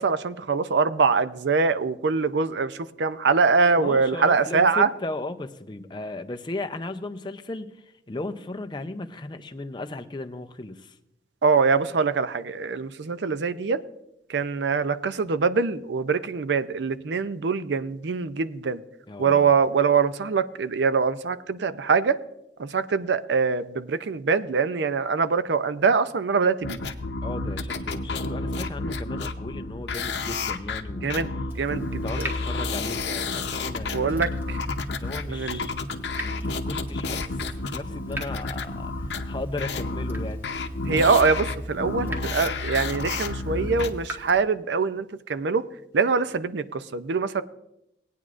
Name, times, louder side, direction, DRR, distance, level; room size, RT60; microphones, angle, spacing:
voice 1, 0.0-4.9 11.4-13.8 14.3-18.8 19.2-22.2 22.6-26.8 31.0-32.3 33.9-34.6 35.3-35.7 40.8-45.6 45.9-47.4, right 5 dB, 80° right, 0.5 m, -23 dB
voice 2, 3.8-7.7 8.1-10.9 19.1-19.5 27.2-31.2 32.0-34.2 34.9-35.7 36.2-38.9 39.3-40.5, left 2 dB, 25° left, 0.5 m, -36 dB
sound 1, 26.6-43.9, left 3 dB, 80° left, 0.7 m, -31 dB
Water tap faucet / Drip, 31.5-44.4, right 1 dB, 15° right, 1.2 m, -43 dB
18.5 x 9.2 x 2.5 m
head